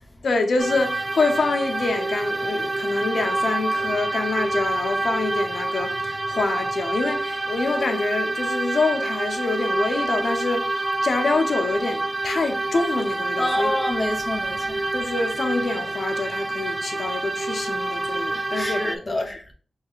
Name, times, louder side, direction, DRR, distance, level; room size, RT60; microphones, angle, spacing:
voice 1, 0.2-13.7 14.9-19.3, left 3 dB, 75° left, 0.6 m, -26 dB
sound 1, 0.6-19.0, right 2 dB, 30° right, 0.3 m, -27 dB
voice 2, 13.4-14.8 18.3-19.4, left 1 dB, 25° left, 0.6 m, -27 dB
4.8 x 3.2 x 2.3 m
cardioid pair, 55°, 0 cm